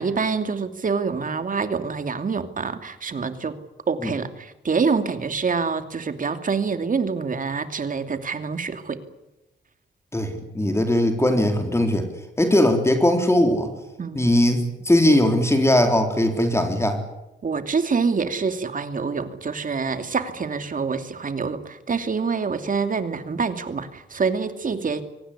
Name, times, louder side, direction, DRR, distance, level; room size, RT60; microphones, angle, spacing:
voice 1, 0.0-3.6 3.9-9.0 14.0-14.3 17.4-25.0, right 5 dB, 45° right, 9 dB, 2.7 m, -26 dB
voice 2, 10.1-12.1 12.4-13.7 14.1-17.0, left 1 dB, 15° left, 5 dB, 3.9 m, -19 dB
24.0 x 18.0 x 10.0 m, 0.93 s
cardioid pair, 90°, 19 cm